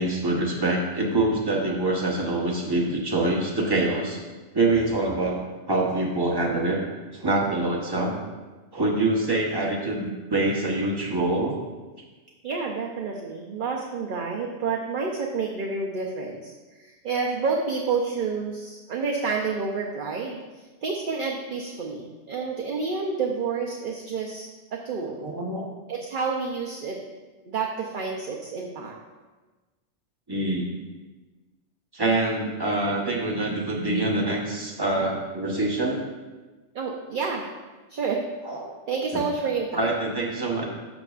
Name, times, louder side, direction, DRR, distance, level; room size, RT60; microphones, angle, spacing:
voice 1, 0.0-4.2 4.5-5.4 5.7-6.8 7.2-8.1 8.7-11.6 25.2-25.6 30.3-30.7 31.9-36.0 38.5-38.7 39.8-40.7, right 2 dB, 20° right, -2 dB, 1.1 m, -25 dB
voice 2, 12.4-25.2 25.9-27.0 27.5-28.9 36.7-37.5 37.9-38.2 38.9-39.9, right 4 dB, 50° right, 0 dB, 0.8 m, -29 dB
12.0 x 6.1 x 2.5 m, 1.3 s
omnidirectional pair, 1.2 m